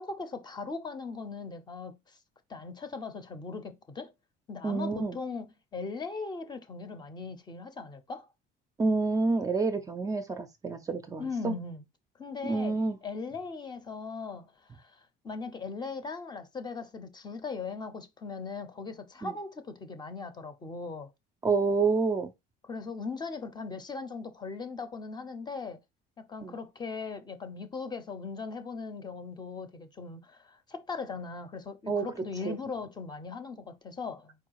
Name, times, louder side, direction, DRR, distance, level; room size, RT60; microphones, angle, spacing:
voice 1, 0.0-2.2 2.5-4.1 4.5-5.5 5.7-8.3 11.2-11.8 12.2-21.1 22.7-25.8 26.3-34.5, left 4 dB, 20° left, 0.6 m, -39 dB
voice 2, 4.6-5.2 8.8-11.6 12.4-13.0 19.2-19.3 21.4-22.3 26.4-26.5 31.9-32.0 32.5-32.6, right 4 dB, 20° right, 0.5 m, -28 dB
4.7 x 2.3 x 4.6 m
cardioid pair, 140°, 19 cm